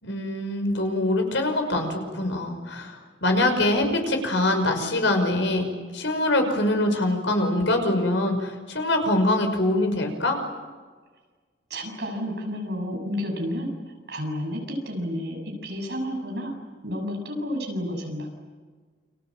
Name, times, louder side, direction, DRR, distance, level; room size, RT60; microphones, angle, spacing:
voice 1, 0.0-5.7 5.9-10.4, left 1 dB, 80° left, 5 dB, 5.9 m, -24 dB
voice 2, 11.7-13.7 14.1-16.5 16.8-18.3, equal, 60° right, 2 dB, 7.4 m, -31 dB
29.5 x 26.5 x 7.6 m, 1.4 s
head